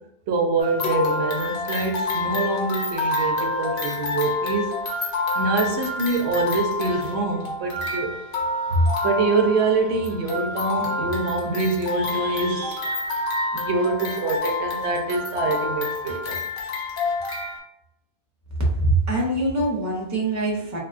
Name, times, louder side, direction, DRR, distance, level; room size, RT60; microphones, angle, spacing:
voice 1, 0.3-4.8 5.3-8.1 8.7-13.0 13.5-16.4, right 3 dB, 90° right, 4 dB, 0.8 m, -25 dB
sound 1, 0.6-17.6, left 3 dB, 60° left, 0.8 m, -28 dB
voice 2, 18.6-20.8, right 2 dB, 20° right, -2 dB, 0.6 m, -23 dB
3.4 x 2.2 x 2.4 m, 0.82 s
omnidirectional pair, 1.1 m